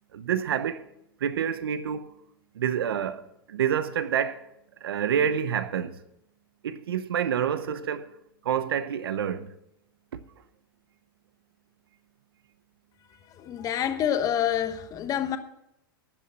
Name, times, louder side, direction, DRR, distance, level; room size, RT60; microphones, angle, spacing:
voice 1, 0.1-0.9 1.2-2.1 2.5-4.5 4.8-6.0 6.6-8.2 8.4-9.5, right 8 dB, 90° right, 0.9 m, -28 dB
voice 2, 13.3-15.4, left 10 dB, 30° left, 1.0 m, -27 dB
12.0 x 7.0 x 7.6 m
hypercardioid pair, 125°, 12 cm